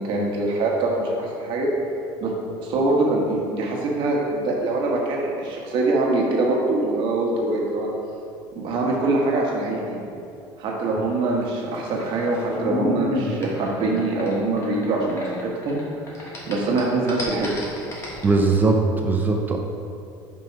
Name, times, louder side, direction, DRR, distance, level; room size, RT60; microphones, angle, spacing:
voice 1, 0.0-1.7 2.2-2.3 2.6-7.9 8.5-10.0 10.6-15.8 16.2-17.7, right 2 dB, 55° right, -1 dB, 1.4 m, -23 dB
sound 1, 11.5-15.8 16.1-18.2, left 2 dB, 30° left, 1.4 m, -31 dB
voice 2, 18.2-19.6, right 3 dB, 20° right, 2 dB, 0.5 m, -20 dB
5.9 x 5.4 x 4.7 m, 2.6 s
cardioid pair, 145°, 10 cm